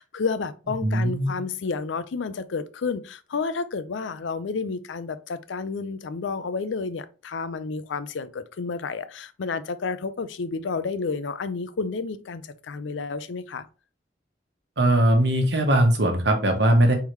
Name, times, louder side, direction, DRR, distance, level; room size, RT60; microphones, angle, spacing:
voice 1, 0.0-13.7, left 4 dB, 90° left, 0.5 m, -30 dB
voice 2, 0.8-1.3 14.8-16.9, right 1 dB, 70° right, 1.1 m, -20 dB
4.7 x 3.6 x 3.1 m
head